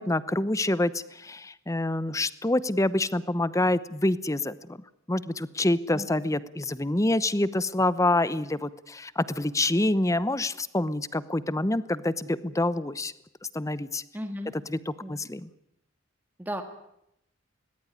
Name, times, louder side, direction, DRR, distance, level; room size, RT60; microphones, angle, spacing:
voice 1, 0.0-4.8 5.1-13.1 13.5-14.0 14.7-15.5, left 2 dB, 15° left, 17 dB, 0.9 m, -27 dB
voice 2, 14.1-14.5 15.0-15.1 16.4-16.6, equal, 10° right, 5 dB, 1.8 m, -34 dB
21.5 x 19.5 x 9.9 m, 0.79 s
head